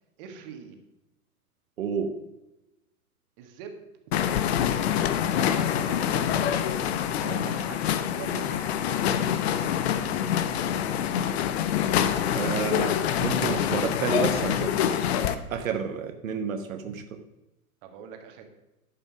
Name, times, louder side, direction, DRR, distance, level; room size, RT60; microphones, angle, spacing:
voice 1, 0.2-0.8 3.4-3.8 4.1-4.2 5.3-6.3 7.1-9.0 16.9-17.0 17.8-18.4, right 7 dB, 35° right, 5 dB, 1.7 m, -42 dB
voice 2, 1.8-2.2 12.3-14.8 15.5-17.0, right 6 dB, 60° right, 7 dB, 1.0 m, -30 dB
sound 1, 4.1-15.4, left 9 dB, 45° left, 0.8 m, -26 dB
11.0 x 5.7 x 6.0 m, 0.97 s
figure-of-eight pair, 105°, 46 cm